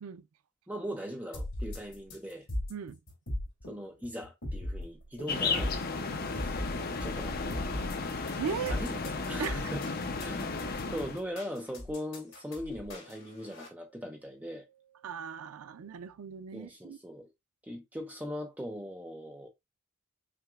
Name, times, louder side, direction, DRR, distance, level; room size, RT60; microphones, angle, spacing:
voice 1, 0.7-2.5 3.7-5.8 6.3-6.6 7.0-8.2 8.7-9.8 10.2-10.6 10.9-14.6 16.5-17.3 17.6-19.5, equal, 5° right, 0.7 m, -40 dB
sound 1, 1.3-13.7, left 1 dB, 70° left, 2.6 m, -38 dB
sound 2, 5.3-11.2, left 4 dB, 45° left, 0.6 m, -34 dB
voice 2, 8.4-8.8 9.4-9.6 15.0-17.0, right 6 dB, 90° right, 0.4 m, -37 dB
sound 3, 11.1-11.2 11.7-11.8 12.3-12.4 12.8-15.9, right 8 dB, 55° right, 1.2 m, -64 dB
6.0 x 2.9 x 2.4 m
head